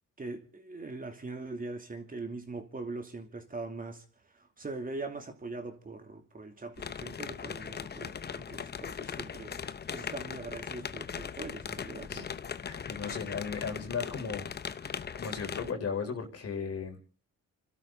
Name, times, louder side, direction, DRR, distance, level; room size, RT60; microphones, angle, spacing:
voice 1, 0.2-9.6 9.9-12.3, right 3 dB, 30° right, 2.8 m, -41 dB
sound 1, 6.8-15.7, left 7 dB, 35° left, 0.8 m, -39 dB
voice 2, 12.6-14.5 14.8-14.9 15.1-17.0, left 6 dB, 55° left, 4.2 m, -36 dB
29.5 x 12.5 x 3.9 m
cardioid pair, 90°, 30 cm